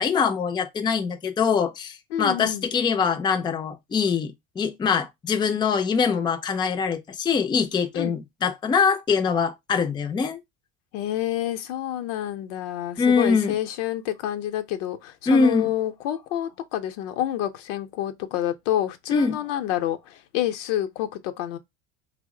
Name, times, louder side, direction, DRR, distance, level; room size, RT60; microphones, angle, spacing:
voice 1, 0.0-10.4 13.0-13.6 15.3-15.7 19.1-19.4, left 5 dB, 15° left, 0.3 m, -23 dB
voice 2, 2.1-2.7 7.9-8.1 10.9-21.6, left 12 dB, 80° left, 0.6 m, -28 dB
3.0 x 2.0 x 3.6 m
supercardioid pair, 90°, 36 cm